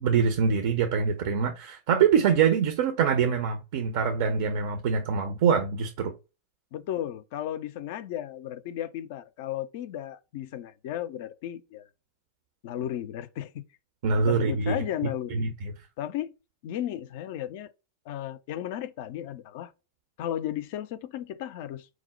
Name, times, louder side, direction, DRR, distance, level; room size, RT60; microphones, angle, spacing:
voice 1, 0.0-6.1 14.0-14.7 15.3-15.7, right 6 dB, 50° right, 0.5 m, -24 dB
voice 2, 6.7-11.9 12.6-13.7 14.2-15.5 16.0-16.3 16.6-17.7 18.1-19.7 20.2-21.9, left 11 dB, 50° left, 0.3 m, -34 dB
4.7 x 2.0 x 3.9 m
figure-of-eight pair, 90°, 0 cm